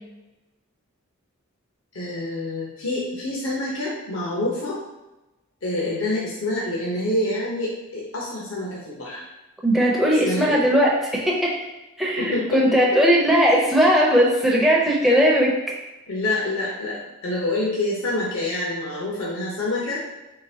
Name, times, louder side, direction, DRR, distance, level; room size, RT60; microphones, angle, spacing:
voice 1, 1.9-4.8 5.6-9.2 10.2-10.7 12.2-12.7 16.1-20.0, left 2 dB, 70° left, -5 dB, 1.0 m, -27 dB
voice 2, 9.6-11.7 12.0-15.5, equal, ahead, -4 dB, 0.7 m, -18 dB
4.4 x 3.8 x 2.8 m, 1.0 s
head